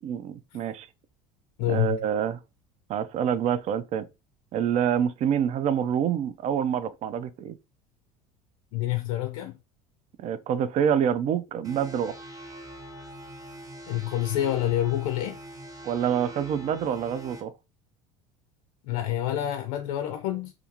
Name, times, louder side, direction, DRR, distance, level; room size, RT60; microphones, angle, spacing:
voice 1, 0.0-0.9 1.7-2.4 2.9-4.1 4.5-7.6 10.2-12.2 15.8-17.5, right 8 dB, 40° right, 0.4 m, -26 dB
voice 2, 1.6-2.0 8.7-9.6 13.9-15.4 18.8-20.5, left 13 dB, 70° left, 0.4 m, -27 dB
sound 1, 11.6-17.4, right 1 dB, 20° right, 1.0 m, -43 dB
2.3 x 2.3 x 2.8 m
supercardioid pair, 90°, 18 cm